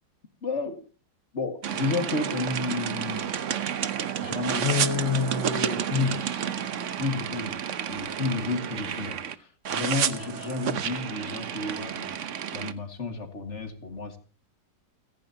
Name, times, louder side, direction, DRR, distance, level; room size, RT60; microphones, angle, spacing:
voice 1, 0.4-0.8 1.3-3.4 4.2-6.5 7.0-7.6 7.9-12.1 12.5-14.2, left 4 dB, 40° left, 7 dB, 2.1 m, -31 dB
sound 1, 1.6-9.3 9.6-12.7, right 8 dB, 50° right, 1.0 m, -30 dB
29.5 x 10.5 x 2.8 m, 0.34 s
omnidirectional pair, 1.9 m